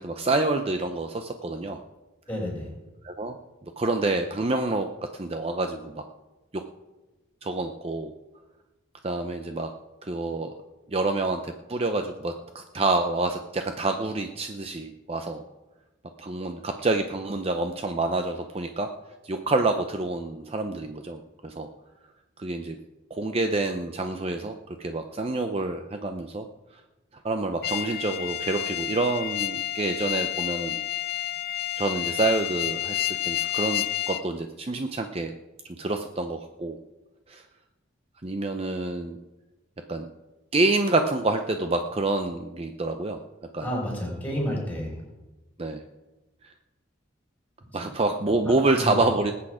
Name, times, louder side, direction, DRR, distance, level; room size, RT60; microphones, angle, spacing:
voice 1, 0.0-1.8 3.0-3.4 3.8-4.9 5.1-6.0 6.5-6.6 7.4-8.1 9.0-9.7 10.0-10.5 10.9-15.4 16.2-18.9 19.2-21.7 22.4-22.8 23.1-24.5 24.8-26.4 27.2-30.8 31.8-35.3 35.7-36.8 37.3-37.4 38.2-39.2 39.9-40.1 40.5-43.2 43.5-43.7 45.6-45.8 47.7-49.3, right 2 dB, 30° right, 6 dB, 0.6 m, -27 dB
voice 2, 2.3-2.7 43.6-45.0 48.5-49.0, equal, 10° left, -3 dB, 5.7 m, -31 dB
sound 1, 27.6-34.2, left 14 dB, 50° left, 0.5 m, -30 dB
20.0 x 8.6 x 4.9 m, 1.1 s
head